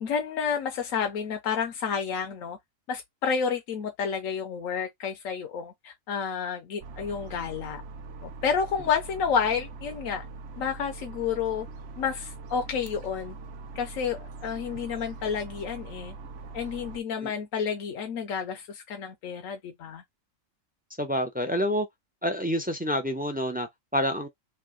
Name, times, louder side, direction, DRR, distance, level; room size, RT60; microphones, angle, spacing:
voice 1, 0.0-2.6 2.9-7.8 8.2-10.2 10.6-11.7 12.0-13.3 13.8-16.1 16.5-20.0, left 6 dB, 85° left, 1.1 m, -30 dB
sound 1, 6.8-17.0, right 3 dB, 60° right, 0.9 m, -42 dB
voice 2, 21.0-21.9 22.2-24.3, equal, 15° right, 0.3 m, -28 dB
3.3 x 2.7 x 3.8 m
omnidirectional pair, 1.4 m